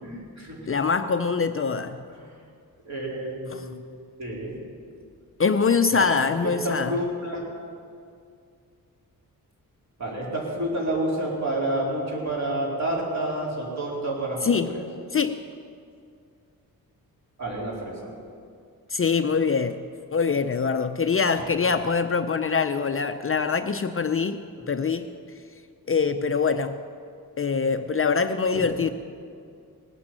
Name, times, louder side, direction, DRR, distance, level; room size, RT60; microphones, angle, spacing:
voice 1, 0.0-0.6 2.2-2.3 2.9-3.7 4.2-4.6 5.9-6.2 6.4-7.5 10.0-14.8 17.4-18.1 28.5-28.8, right 1 dB, 50° right, -4 dB, 4.2 m, -29 dB
voice 2, 0.7-2.0 3.5-3.7 5.4-6.9 14.4-14.7 15.1-15.4 18.9-24.4 24.7-25.1 25.9-26.8 27.4-28.9, left 5 dB, 35° left, 8 dB, 0.5 m, -24 dB
19.5 x 8.7 x 7.6 m, 2.3 s
wide cardioid pair, 125°, 36 cm